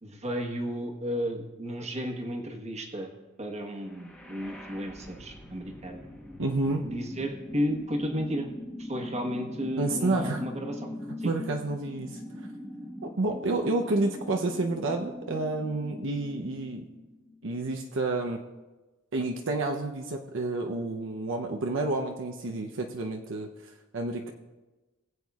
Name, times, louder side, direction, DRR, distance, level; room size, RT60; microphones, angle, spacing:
voice 1, 0.0-3.1 3.4-6.1 6.8-8.5 8.8-10.9 11.2-11.3, equal, 35° right, 2 dB, 1.2 m, -33 dB
sound 1, 3.8-17.7, left 1 dB, 5° left, 1.0 m, -42 dB
voice 2, 6.4-6.8 9.8-10.4 11.2-12.2 13.0-16.9 17.4-18.4 19.1-24.3, right 2 dB, 65° right, 2 dB, 0.7 m, -30 dB
19.5 x 8.1 x 2.4 m, 1.1 s
head